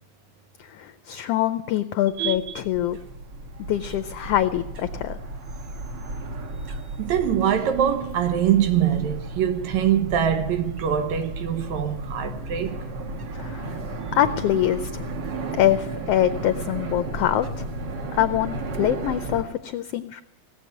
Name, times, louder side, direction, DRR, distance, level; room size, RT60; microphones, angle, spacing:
voice 1, 0.7-3.0 3.7-5.2 13.3-13.8 14.1-15.1 15.5-17.7 18.1-20.2, left 12 dB, 75° left, 1.5 m, -24 dB
sound 1, 2.1-19.4, right 2 dB, 50° right, 1.5 m, -34 dB
voice 2, 2.2-2.6 7.0-12.8, right 9 dB, 80° right, 2.5 m, -23 dB
17.5 x 7.6 x 9.2 m
omnidirectional pair, 3.3 m